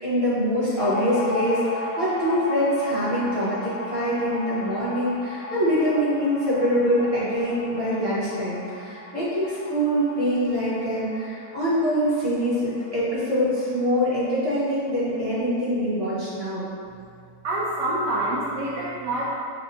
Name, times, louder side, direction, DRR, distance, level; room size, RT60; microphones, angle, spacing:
voice 1, 0.0-16.6, equal, 25° right, -10 dB, 1.1 m, -24 dB
sound 1, 0.7-13.9 14.2-14.3 14.5-15.3, left 1 dB, 75° left, 1.1 m, -36 dB
voice 2, 17.4-19.3, right 1 dB, 85° right, -7 dB, 1.2 m, -26 dB
6.6 x 2.5 x 2.7 m, 2.2 s
omnidirectional pair, 1.8 m